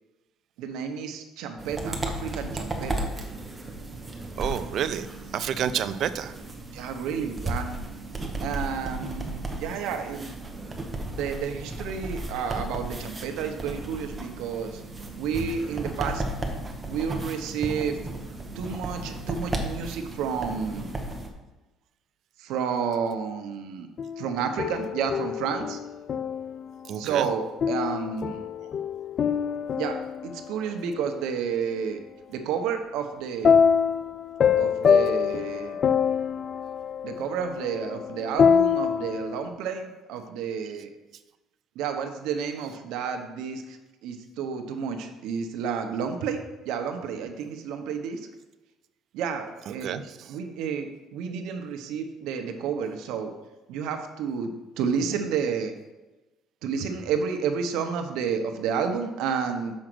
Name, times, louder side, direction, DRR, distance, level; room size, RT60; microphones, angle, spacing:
voice 1, 0.6-3.1 6.7-7.8 8.4-10.3 11.1-14.8 15.2-16.2 16.9-18.0 18.5-20.9 22.4-23.9 24.2-25.8 27.0-28.7 29.8-30.0 30.2-32.0 32.3-33.5 34.6-35.8 37.0-40.9 41.8-43.8 44.0-46.4 46.7-48.3 49.1-50.0 50.3-53.3 53.7-55.7 56.6-59.7, right 6 dB, 80° right, 6 dB, 0.8 m, -30 dB
sound 1, 1.6-21.3, right 2 dB, 15° right, 1.0 m, -34 dB
voice 2, 4.4-5.1 5.3-6.3 26.9-27.3 49.8-50.3, right 9 dB, 55° right, 12 dB, 0.4 m, -29 dB
sound 2, 24.0-26.7 27.6-31.0 33.4-39.5, left 7 dB, 40° left, 0.3 m, -25 dB
6.3 x 4.9 x 6.2 m, 1.1 s
cardioid pair, 145°, 0 cm